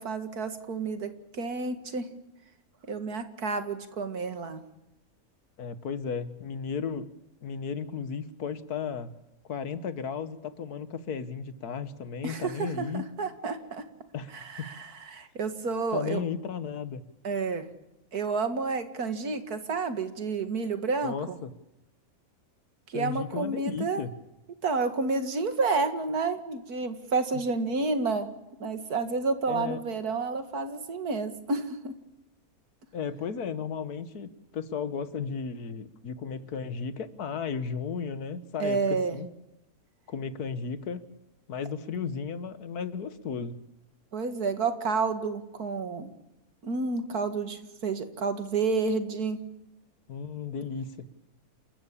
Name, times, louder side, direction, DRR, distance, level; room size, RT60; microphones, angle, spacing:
voice 1, 0.0-2.1 2.9-4.6 12.2-13.9 14.3-16.2 17.2-17.7 18.1-21.4 22.9-24.0 24.6-28.3 28.6-31.9 38.6-39.2 44.1-46.1 46.6-49.4, right 4 dB, 80° right, 9 dB, 2.4 m, -30 dB
voice 2, 5.6-7.1 7.4-9.1 9.5-13.1 14.1-14.3 14.6-14.7 15.9-17.0 21.0-21.5 22.9-24.1 29.5-29.8 32.9-39.3 40.1-41.0 41.5-43.5 50.1-51.1, left 6 dB, 90° left, 13 dB, 1.8 m, -34 dB
29.0 x 14.0 x 8.7 m, 0.93 s
omnidirectional pair, 1.6 m